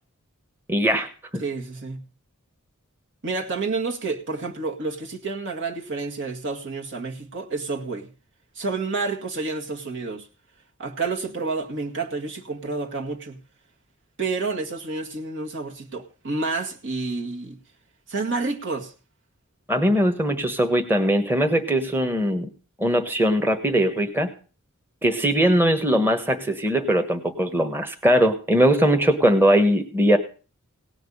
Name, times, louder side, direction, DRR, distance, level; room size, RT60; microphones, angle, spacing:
voice 1, 0.7-1.4 19.7-22.5 22.8-24.3 25.0-30.2, equal, 10° right, 1.3 m, -20 dB
voice 2, 1.4-2.0 3.2-8.1 8.6-10.3 10.8-13.4 14.2-17.6 18.1-18.9, right 3 dB, 55° right, 2.0 m, -29 dB
18.0 x 6.0 x 8.6 m
head